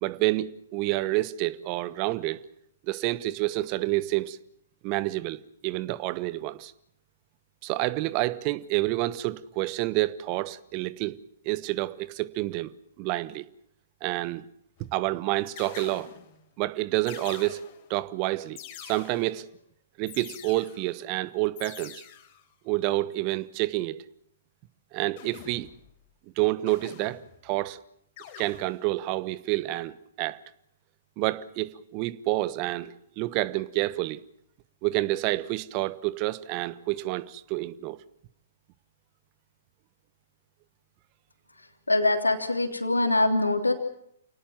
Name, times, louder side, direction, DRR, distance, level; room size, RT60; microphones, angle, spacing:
voice 1, 0.0-2.4 2.9-4.4 4.8-6.7 7.6-11.2 11.4-13.4 14.0-14.4 14.8-16.1 16.6-19.5 20.0-22.0 22.6-24.0 24.9-25.7 26.4-27.8 28.4-30.4 31.2-34.2 34.8-38.0, right 18 dB, 35° right, 1.1 m, -29 dB
sound 1, 14.8-15.1 15.6-16.4 17.1-18.0 18.6-19.5 20.1-21.0 21.6-22.4 25.2-25.9 26.7-27.5 28.2-28.9, left 10 dB, 40° left, 4.2 m, -46 dB
voice 2, 41.9-43.7, left 2 dB, 85° left, 3.2 m, -23 dB
28.5 x 19.0 x 7.3 m
figure-of-eight pair, 115°, 0 cm